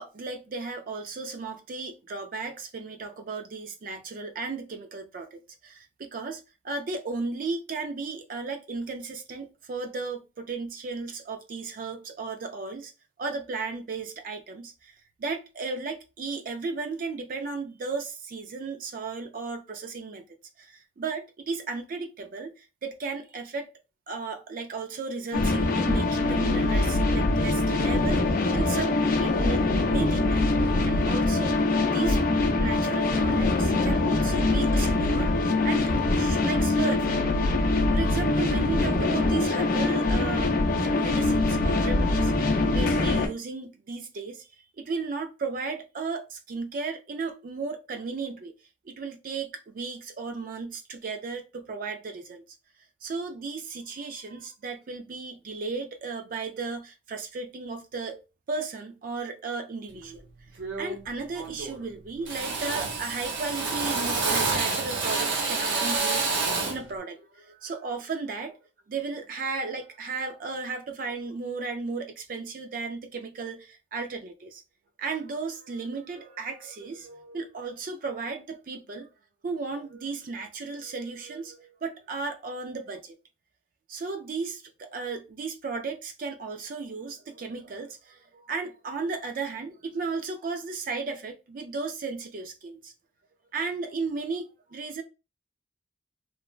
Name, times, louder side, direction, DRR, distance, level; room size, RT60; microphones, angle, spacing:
voice 1, 0.0-12.9 13.2-20.3 20.6-23.7 24.1-31.6 31.9-32.2 32.6-35.3 35.6-37.2 37.9-44.5 44.8-48.5 48.9-52.4 53.0-60.2 60.8-68.6 68.9-74.6 75.0-79.1 79.4-83.2 83.9-92.9 93.5-95.0, right 4 dB, 50° right, 0.4 m, -35 dB
sound 1, 25.3-43.3, left 2 dB, 50° left, 0.5 m, -23 dB
Drill, 59.9-60.2 60.6-61.1 61.3-61.9 62.2-66.9, right 3 dB, 80° right, 0.8 m, -28 dB
3.2 x 2.1 x 2.4 m
head